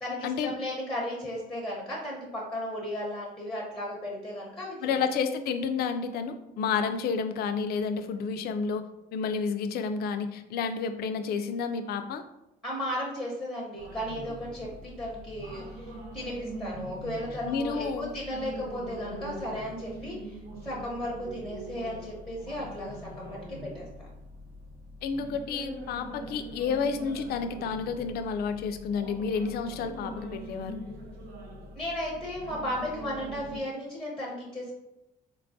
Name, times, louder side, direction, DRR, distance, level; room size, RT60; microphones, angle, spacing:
voice 1, 0.0-5.0 12.6-20.4 20.6-24.1 31.8-34.7, equal, ahead, -3 dB, 0.8 m, -35 dB
voice 2, 4.8-8.8 9.1-12.2 17.4-18.1 25.0-30.8, left 5 dB, 65° left, 8 dB, 0.4 m, -30 dB
sound 1, 13.8-33.6, right 1 dB, 65° right, 0.8 m, -43 dB
4.1 x 2.3 x 2.6 m, 0.89 s
cardioid pair, 110°, 17 cm